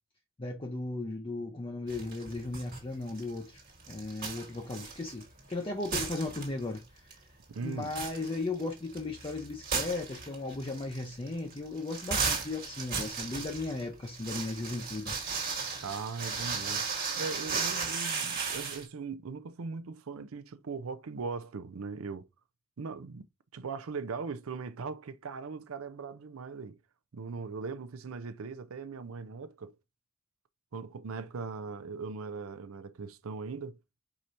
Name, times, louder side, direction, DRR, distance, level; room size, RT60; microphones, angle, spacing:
voice 1, 0.4-3.6 3.9-7.1 7.6-15.1, left 2 dB, 25° left, 0.5 m, -36 dB
sound 1, 1.9-2.8 3.1-5.5 5.8-6.8 7.1-7.2 7.6-18.8, right 5 dB, 45° right, 1.6 m, -35 dB
voice 2, 7.5-8.0 15.8-16.9 17.2-22.3 22.8-23.2 23.5-26.8 27.1-29.8 30.7-33.8, right 4 dB, 70° right, 0.5 m, -39 dB
4.8 x 4.3 x 2.6 m
head